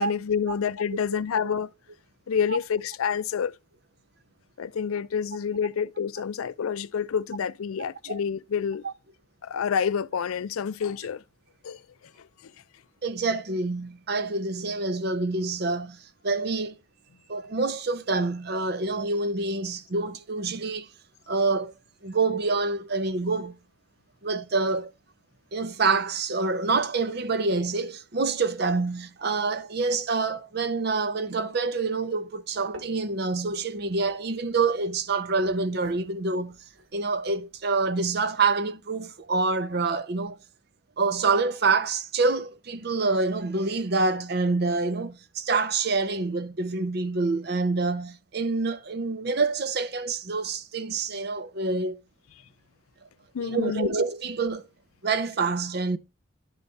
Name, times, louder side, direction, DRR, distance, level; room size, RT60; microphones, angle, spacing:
voice 1, 0.0-1.7 2.3-3.6 4.6-8.8 9.4-11.2 11.6-11.8 12.2-12.3 53.3-53.9, left 7 dB, 85° left, 0.4 m, -28 dB
voice 2, 13.0-16.0 16.2-16.8 17.3-20.9 21.3-21.7 22.0-23.6 24.2-24.9 25.5-36.6 36.9-40.4 41.0-52.0 53.4-54.7 55.0-56.0, right 3 dB, 50° right, 0.6 m, -26 dB
sound 1, 32.5-37.9, right 1 dB, 65° right, 1.3 m, -52 dB
11.5 x 4.0 x 3.3 m
head